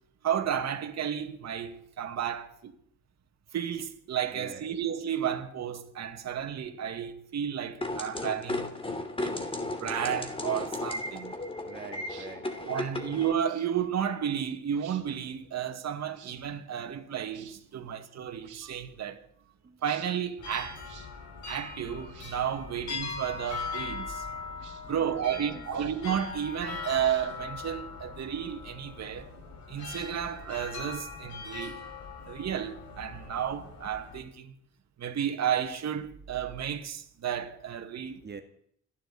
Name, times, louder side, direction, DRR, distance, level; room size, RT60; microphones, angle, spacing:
voice 1, 0.2-2.7 3.5-8.7 9.2-9.4 9.8-11.3 12.6-19.2 19.8-20.8 21.5-24.5 24.9-29.3 29.7-31.8 32.3-34.5 35.0-38.2, right 9 dB, 60° right, 2.2 m, -32 dB
voice 2, 4.3-4.7 11.6-12.5 12.9-13.0 19.6-19.8 24.9-25.8 38.2-38.4, right 5 dB, 35° right, 1.9 m, -46 dB
sound 1, 7.8-13.3, left 2 dB, 20° left, 2.8 m, -35 dB
sound 2, 12.0-12.3 13.4-13.7 14.7-15.0 16.1-16.4 17.3-17.6 18.4-18.7 19.8-20.1 20.8-21.1 22.0-22.4 23.4-23.7 24.6-24.8 25.7-26.1 26.9-27.5, right 10 dB, 80° right, 2.5 m, -52 dB
sound 3, 20.4-34.2, left 5 dB, 70° left, 5.2 m, -41 dB
29.5 x 11.0 x 4.2 m
cardioid pair, 90°, 30 cm